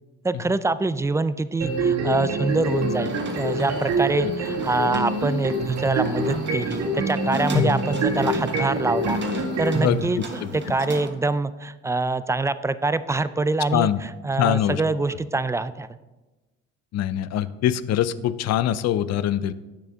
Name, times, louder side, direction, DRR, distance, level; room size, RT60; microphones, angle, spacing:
voice 1, 0.2-15.9, right 3 dB, 10° right, 14 dB, 0.3 m, -25 dB
sound 1, 1.6-9.9, right 1 dB, 60° right, 2.1 m, -26 dB
sound 2, 2.6-11.1, right 3 dB, 35° right, 1.4 m, -36 dB
voice 2, 9.8-10.5 13.7-14.0 14.4-14.8 16.9-19.5, left 11 dB, 60° left, 16 dB, 0.5 m, -23 dB
9.7 x 6.7 x 3.6 m, 1.1 s
supercardioid pair, 75°, 31 cm